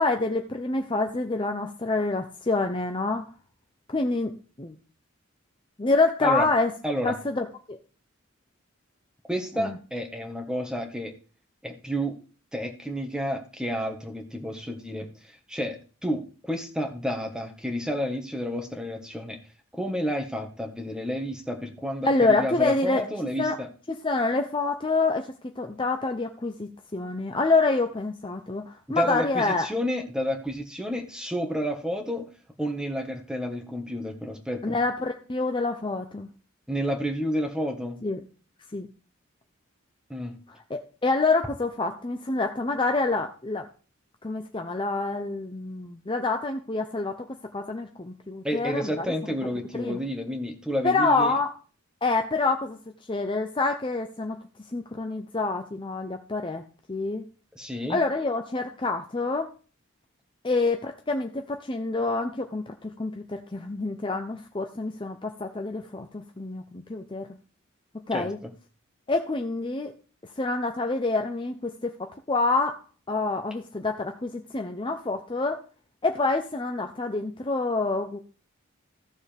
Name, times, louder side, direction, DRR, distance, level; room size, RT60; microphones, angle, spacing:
voice 1, 0.0-3.3 3.9-4.3 4.6-4.8 5.8-6.7 7.0-7.8 9.6-9.8 22.0-23.0 23.4-23.6 24.0-29.7 34.6-36.3 38.0-38.2 38.7-38.9 40.7-43.7 44.2-47.2 47.5-49.1 49.8-50.0 50.8-51.5 52.0-52.8 53.1-54.4 54.7-57.2 57.9-59.5 60.4-67.3 68.1-68.4 69.1-69.9 70.4-72.8 73.1-75.6 76.0-78.2, left 3 dB, 25° left, 4 dB, 0.7 m, -27 dB
voice 2, 6.8-7.2 9.3-11.1 11.6-12.1 12.5-19.4 19.7-23.7 28.9-32.3 32.6-34.8 36.7-38.0 40.1-40.3 48.4-51.3 57.5-58.0 68.1-68.3, equal, 5° right, 4 dB, 1.5 m, -30 dB
15.0 x 6.8 x 3.5 m, 0.37 s
head